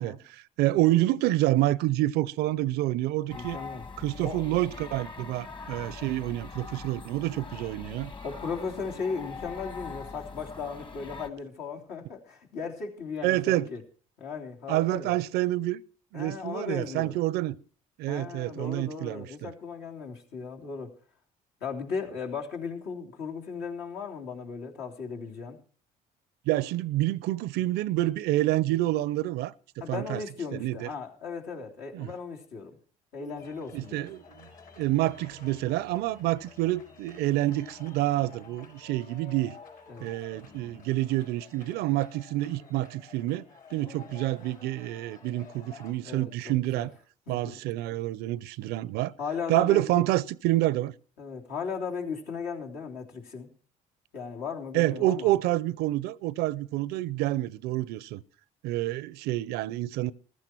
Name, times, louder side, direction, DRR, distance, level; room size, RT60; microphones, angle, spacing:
voice 1, 0.0-3.6 4.0-8.1 13.2-13.7 14.7-15.8 16.1-17.6 18.0-19.5 26.5-29.5 29.9-30.2 30.5-30.9 31.9-32.1 33.2-33.4 33.7-34.5 34.8-39.6 40.0-46.9 47.3-49.1 49.5-50.9 54.7-58.2 58.6-60.1, right 16 dB, 70° right, 0.5 m, -28 dB
voice 2, 3.3-3.8 4.2-4.4 8.2-13.8 14.2-15.2 16.1-17.2 18.1-20.9 21.6-25.6 29.8-32.8 33.1-34.1 39.9-40.1 46.0-46.9 47.3-47.5 49.2-50.0 51.2-53.5 54.1-55.3, left 5 dB, 70° left, 3.2 m, -37 dB
sound 1, 3.3-11.3, left 4 dB, 30° left, 1.6 m, -42 dB
sound 2, 33.4-45.9, left 5 dB, 55° left, 5.3 m, -51 dB
15.0 x 13.5 x 4.5 m
supercardioid pair, 70°, 17 cm